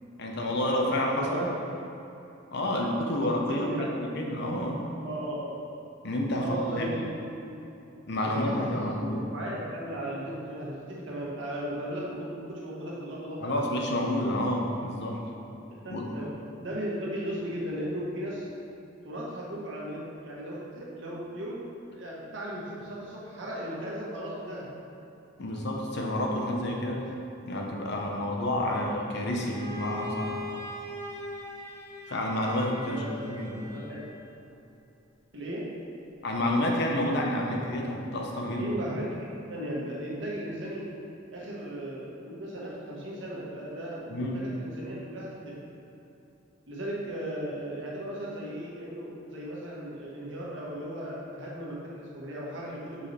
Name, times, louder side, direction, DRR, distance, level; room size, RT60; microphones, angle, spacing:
voice 1, 0.2-1.5 2.5-3.7 4.1-4.8 6.0-7.0 8.1-9.3 13.4-15.2 15.9-16.1 25.4-27.0 27.5-30.4 32.1-33.7 36.2-38.7 44.1-44.4, left 1 dB, 60° left, 0 dB, 0.8 m, -29 dB
voice 2, 1.1-1.5 3.5-3.9 5.0-5.6 6.4-7.5 8.2-13.7 15.8-16.3 16.6-18.5 19.0-21.6 21.9-24.7 32.8-34.0 35.3-35.7 38.6-40.9 41.3-45.6 46.7-53.1, right 1 dB, 65° right, -5 dB, 1.4 m, -36 dB
Bowed string instrument, 29.4-34.2, left 2 dB, 15° left, 1.0 m, -41 dB
5.5 x 4.9 x 4.2 m, 2.9 s
head